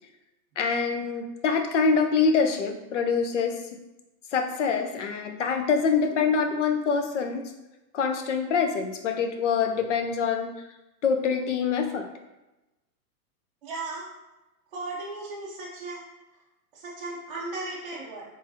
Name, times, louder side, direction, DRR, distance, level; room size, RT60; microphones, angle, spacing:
voice 1, 0.6-3.6 4.3-7.5 7.9-10.5 11.0-12.1, left 5 dB, 50° left, 5 dB, 0.5 m, -25 dB
voice 2, 13.6-14.1 14.7-16.0 16.7-18.2, right 2 dB, 35° right, -6 dB, 0.5 m, -36 dB
3.7 x 3.7 x 2.7 m, 1.0 s
hypercardioid pair, 170°, 48 cm